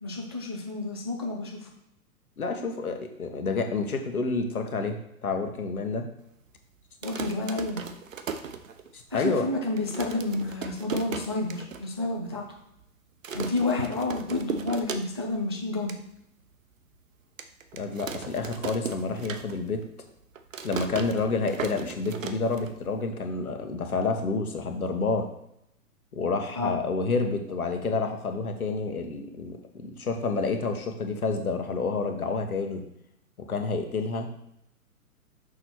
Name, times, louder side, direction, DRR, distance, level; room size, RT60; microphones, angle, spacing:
voice 1, 0.0-1.7 7.0-7.9 9.1-12.4 13.3-15.9 26.6-26.7, left 2 dB, 20° right, 1 dB, 0.3 m, -30 dB
voice 2, 2.4-6.1 8.9-9.5 17.7-19.8 20.6-25.3 26.1-32.8 33.5-34.3, left 4 dB, 70° left, 5 dB, 1.3 m, -29 dB
sound 1, 6.9-9.1 9.5-9.6 9.8-11.8 12.2-12.3 12.5-12.8 13.2-15.4 15.7-16.0 16.5-16.6 17.4-19.8 20.1-23.0, right 6 dB, 60° right, 0.8 m, -37 dB
6.4 x 4.8 x 4.4 m, 0.79 s
figure-of-eight pair, 115°, 45 cm